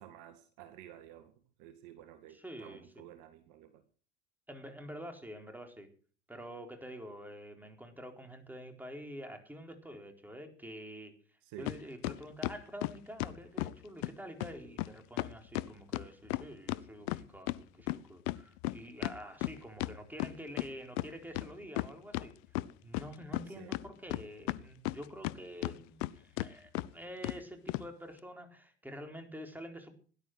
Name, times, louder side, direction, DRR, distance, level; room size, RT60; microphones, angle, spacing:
voice 1, 0.0-1.3 1.6-3.8 11.4-11.7 23.6-23.8, right 11 dB, 55° right, 1.9 m, -52 dB
voice 2, 2.3-3.0 4.5-5.9 6.3-11.1 11.6-22.3 22.8-29.9, equal, 5° right, 4.3 m, -47 dB
sound 1, 11.7-11.8 12.0-13.7 14.0-14.1 14.4-14.5 14.8-14.9 15.2-17.6 17.9-20.7 21.0-21.1 21.3-22.3 22.5-23.4 23.7-25.3 25.6-26.1 26.4-26.5 26.7-26.9 27.2-27.4 27.7-27.8, left 20 dB, 60° left, 0.8 m, -35 dB
17.0 x 11.5 x 6.3 m
figure-of-eight pair, 75°, 36 cm